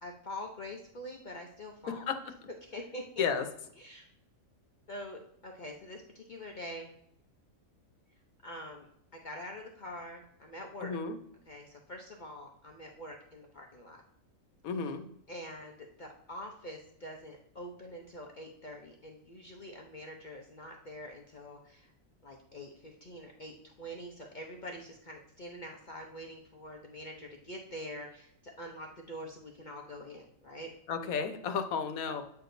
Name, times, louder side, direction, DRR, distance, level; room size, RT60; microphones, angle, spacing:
voice 1, 0.0-2.1 2.6-3.2 3.8-4.1 4.9-6.9 8.4-8.9 9.2-11.0 11.5-14.0 14.8-14.9 15.3-21.9 22.2-30.7, equal, 45° left, 1 dB, 0.7 m, -45 dB
voice 2, 1.9-2.2 3.2-3.5 10.8-11.1 14.6-15.0 30.9-32.2, left 6 dB, 85° left, 8 dB, 1.2 m, -32 dB
8.4 x 4.7 x 2.6 m, 0.69 s
omnidirectional pair, 1.4 m